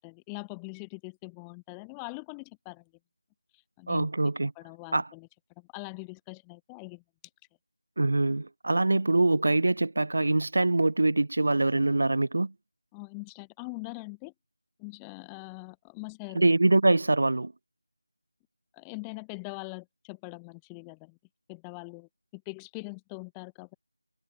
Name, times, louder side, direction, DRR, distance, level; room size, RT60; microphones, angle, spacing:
voice 1, 0.0-2.8 3.8-4.1 4.6-5.3 5.6-7.0 12.9-14.3 14.8-16.5 18.7-21.2 21.5-23.7, left 37 dB, 5° left, 5.6 m, -42 dB
voice 2, 3.9-4.5 4.9-5.1 8.0-12.5 16.3-17.5, right 2 dB, 45° right, 2.5 m, -24 dB
figure-of-eight pair, 175°, 0 cm